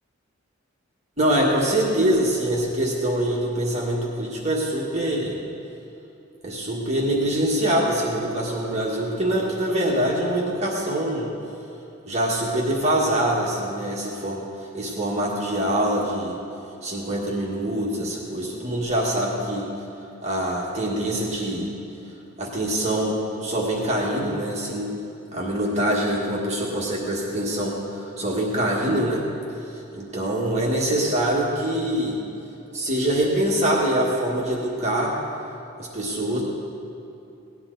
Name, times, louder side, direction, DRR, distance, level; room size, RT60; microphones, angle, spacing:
voice 1, 1.2-5.4 6.4-11.3 12.0-14.4 14.7-16.4 16.8-19.7 20.2-21.7 22.4-24.9 25.3-29.2 29.7-32.2 32.7-35.2 35.8-36.4, right 1 dB, 35° right, -3 dB, 1.6 m, -24 dB
17.5 x 10.0 x 4.0 m, 2.8 s
head